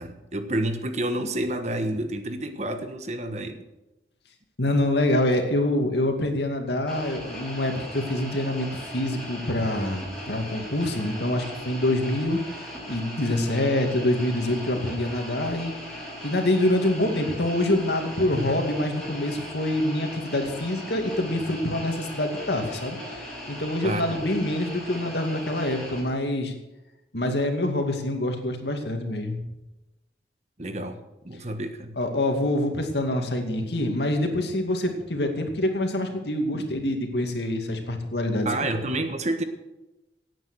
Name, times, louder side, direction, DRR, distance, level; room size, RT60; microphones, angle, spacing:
voice 1, 0.0-3.6 23.8-24.2 30.6-31.0 31.2-32.0 36.5-36.7 38.4-39.4, right 1 dB, 40° right, 8 dB, 1.4 m, -29 dB
voice 2, 4.6-8.7 8.9-12.4 12.9-15.7 16.2-26.5 27.1-29.4 32.0-38.5, left 1 dB, 75° left, 4 dB, 2.4 m, -26 dB
sound 1, 6.9-26.0, equal, 5° left, 6.9 m, -38 dB
17.0 x 9.2 x 6.3 m, 1.0 s
head